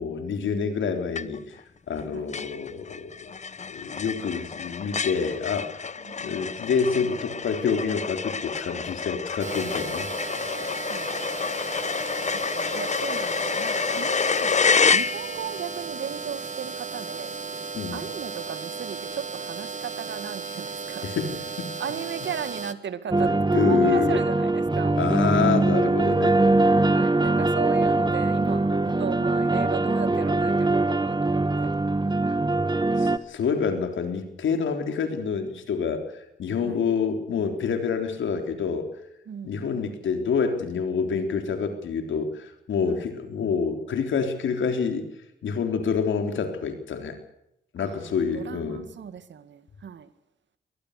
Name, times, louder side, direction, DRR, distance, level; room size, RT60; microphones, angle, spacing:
voice 1, 0.0-3.3 3.7-5.7 6.2-10.1 17.7-18.0 21.0-21.8 23.3-24.2 25.0-26.4 33.0-38.9 39.4-45.1 45.4-47.2 47.7-48.9, left 6 dB, 80° left, 6 dB, 3.7 m, -27 dB
sound 1, 1.1-1.6 1.9-2.0 2.3-15.6, left 5 dB, 35° left, 0.8 m, -28 dB
voice 2, 6.0-6.4 10.9-11.1 12.3-14.6 14.9-17.3 17.9-21.1 21.8-25.0 26.8-31.7 36.6-36.8 39.3-39.5 42.9-43.0 47.8-50.1, right 7 dB, 70° right, 12 dB, 2.1 m, -36 dB
sound 2, 9.4-22.7, right 4 dB, 40° right, 1.9 m, -35 dB
sound 3, 23.1-33.2, right 2 dB, 25° right, 1.5 m, -22 dB
23.5 x 19.0 x 6.7 m, 0.83 s
cardioid pair, 55°, 20 cm